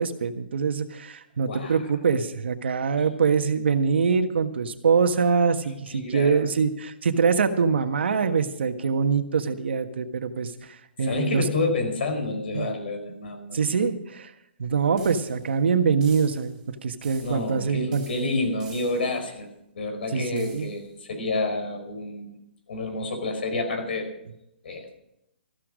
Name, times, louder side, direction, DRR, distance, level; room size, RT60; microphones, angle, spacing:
voice 1, 0.0-11.4 12.5-12.7 13.5-14.3 14.6-18.0 20.1-20.7, right 5 dB, 70° right, 8 dB, 1.5 m, -24 dB
voice 2, 5.9-6.5 11.0-13.6 17.2-19.5 19.7-22.4 22.7-24.1 24.6-24.9, left 2 dB, 65° left, 6 dB, 4.5 m, -29 dB
sound 1, 15.0-15.6 16.0-16.6 17.0-17.6 17.9-19.2 20.4-20.9, right 7 dB, 15° right, 3.7 m, -48 dB
14.5 x 13.0 x 5.1 m, 0.80 s
hypercardioid pair, 165°, 6 cm